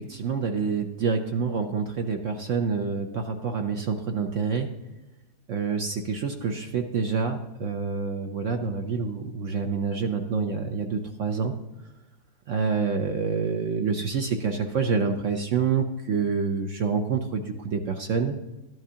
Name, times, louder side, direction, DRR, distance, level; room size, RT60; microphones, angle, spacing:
voice 1, 0.0-4.7 5.5-11.5 12.5-18.4, right 5 dB, 60° right, 5 dB, 0.9 m, -27 dB
13.0 x 11.0 x 2.8 m, 1.1 s
omnidirectional pair, 1.8 m